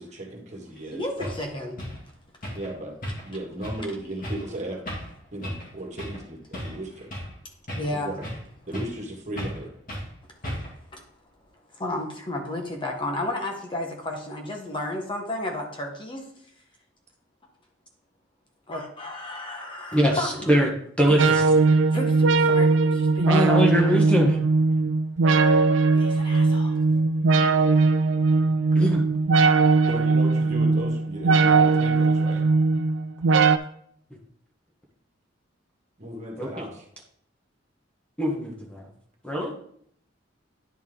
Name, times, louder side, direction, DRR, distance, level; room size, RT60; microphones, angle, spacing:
voice 1, 0.0-1.3 2.5-2.9 3.2-4.8 5.3-7.1 7.9-8.2 8.7-9.7 29.4-29.5 29.8-32.4 36.0-36.8, right 1 dB, 40° right, 0 dB, 1.7 m, -36 dB
sound 1, 0.8-0.9 1.2-1.4 1.8-2.0 2.4-2.7 3.0-3.3 3.6-3.8 4.2-4.5 4.9-5.1 5.4-5.7 6.0-6.2 6.5-7.4 7.7-8.5 8.7-9.0 9.4-9.6 9.9-10.1 10.4-10.8, equal, 45° left, 2.2 m, -34 dB
voice 2, 0.9-1.8 7.7-8.1 10.9-11.0 11.7-16.2 18.7-20.6 21.1-21.2 21.9-23.5 25.9-26.7, left 1 dB, 25° left, 0 dB, 1.1 m, -33 dB
voice 3, 19.9-20.7 21.0-21.4 23.3-24.4 28.7-29.0 36.4-36.6 38.2-38.9 39.2-39.5, equal, 5° left, -1 dB, 1.2 m, -22 dB
sound 2, 21.2-33.6, right 4 dB, 80° right, 0.5 m, -20 dB
10.5 x 4.4 x 3.7 m, 0.65 s
head